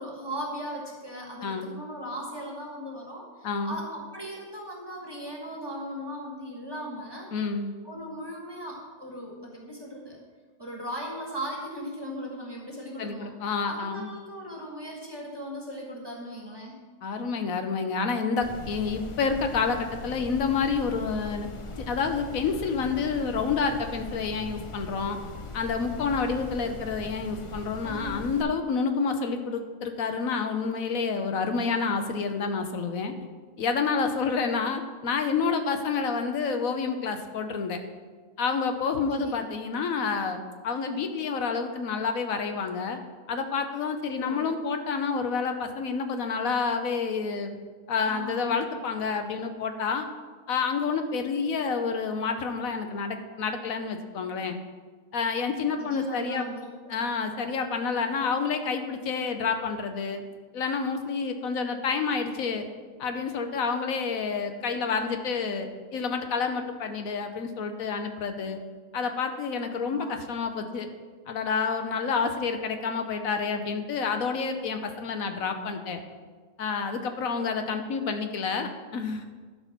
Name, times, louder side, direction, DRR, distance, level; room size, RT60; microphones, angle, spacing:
voice 1, 0.0-7.3 7.8-10.2 10.6-13.3 13.6-16.8 27.8-28.3 39.1-39.4 44.1-44.6 48.0-48.6 55.8-56.7 69.8-70.1, equal, 20° right, -2 dB, 1.3 m, -38 dB
voice 2, 3.4-3.8 7.3-7.7 13.0-14.1 17.0-21.5 21.8-25.2 25.5-33.1 33.6-37.8 38.4-43.0 43.3-47.6 47.9-50.1 50.5-54.6 55.1-56.4 56.9-60.2 60.5-62.7 63.0-68.6 68.9-70.9 71.3-76.0 76.6-79.2, left 5 dB, 80° left, 6 dB, 1.3 m, -29 dB
sound 1, 18.4-28.4, left 2 dB, 40° left, 0.4 m, -40 dB
11.5 x 4.6 x 5.9 m, 1.4 s
omnidirectional pair, 1.4 m